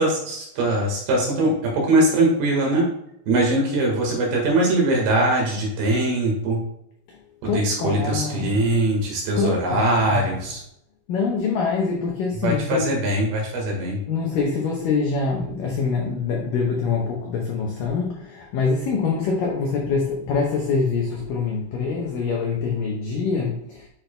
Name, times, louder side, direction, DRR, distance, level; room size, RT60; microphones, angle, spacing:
voice 1, 0.0-2.9 3.3-6.6 7.4-10.6 12.4-14.0, right 1 dB, 65° right, -1 dB, 3.1 m, -21 dB
voice 2, 7.4-8.6 9.3-10.3 11.1-12.9 14.1-23.9, left 4 dB, 85° left, -1 dB, 1.9 m, -25 dB
9.5 x 5.9 x 2.2 m, 0.77 s
omnidirectional pair, 5.4 m